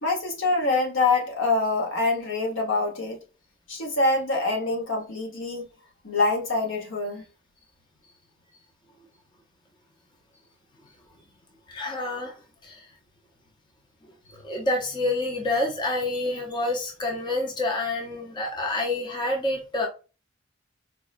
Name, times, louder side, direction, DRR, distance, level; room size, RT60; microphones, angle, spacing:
voice 1, 0.0-3.2 3.7-5.7 6.0-7.2, left 3 dB, 65° left, 1.0 m, -25 dB
voice 2, 11.7-12.4 12.6-12.9 14.3-19.9, left 2 dB, 25° left, 0.6 m, -28 dB
4.5 x 2.1 x 2.4 m
head